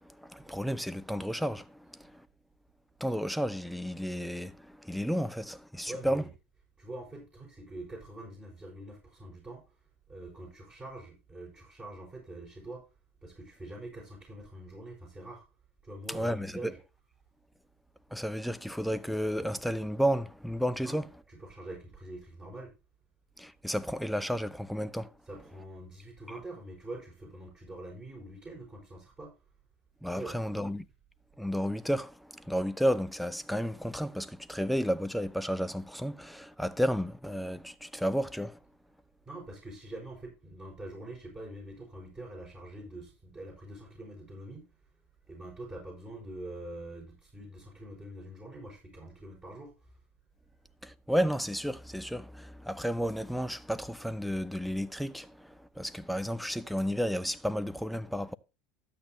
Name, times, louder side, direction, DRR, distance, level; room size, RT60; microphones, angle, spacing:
voice 1, 0.0-2.3 3.0-6.2 16.1-16.7 18.1-21.1 23.4-25.1 30.0-30.9 31.4-38.6 50.8-58.3, equal, ahead, 0.7 m, -32 dB
voice 2, 5.9-6.3 6.8-9.6 10.1-12.8 13.2-15.4 15.8-16.8 20.8-22.7 25.2-29.3 30.1-30.6 39.3-44.7 45.3-49.7, right 1 dB, 20° right, 5.2 m, -45 dB
12.5 x 8.6 x 2.8 m
hypercardioid pair, 80°, 7 cm